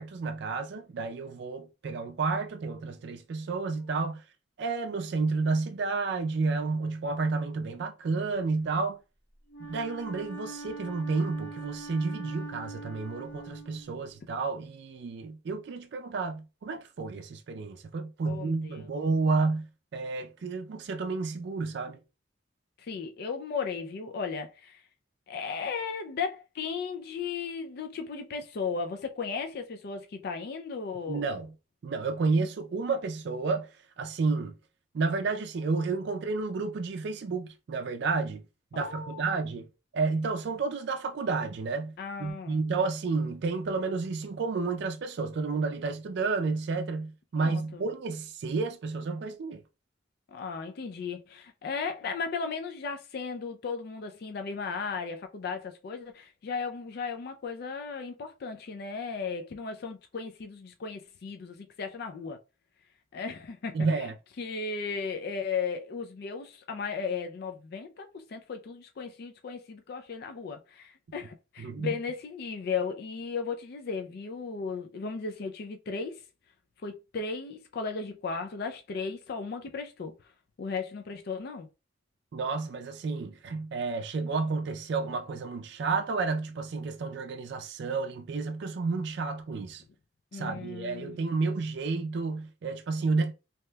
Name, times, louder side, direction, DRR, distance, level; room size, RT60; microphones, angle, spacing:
voice 1, 0.0-4.2 4.6-9.0 9.6-19.7 19.9-22.0 31.1-31.5 31.8-34.5 34.9-38.4 38.7-39.7 39.9-41.9 42.2-49.6 63.7-64.1 71.6-71.9 82.3-89.8 90.3-93.3, right 4 dB, 65° right, 0.4 m, -31 dB
Wind instrument woodwind instrument, 9.5-14.2, right 2 dB, 75° left, 1.4 m, -43 dB
voice 2, 18.3-18.9 22.8-24.8 25.3-31.3 38.7-39.4 42.0-42.6 47.3-47.8 50.3-62.4 63.1-64.1 64.4-76.2 76.8-80.1 80.6-81.7 90.3-91.3, left 5 dB, 55° left, 0.4 m, -36 dB
2.8 x 2.2 x 3.2 m
head